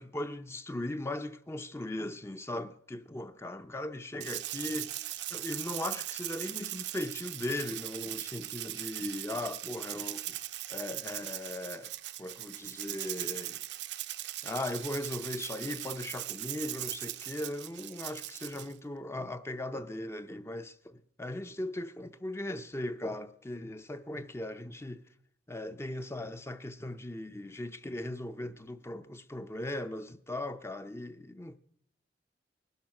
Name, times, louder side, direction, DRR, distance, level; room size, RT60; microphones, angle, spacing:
voice 1, 0.0-10.4 10.7-11.9 12.2-13.6 14.4-25.0 25.5-31.6, left 1 dB, 15° left, 0.5 m, -38 dB
Rattle (instrument), 4.2-18.7, right 14 dB, 80° right, 0.7 m, -39 dB
20.0 x 12.5 x 5.8 m
head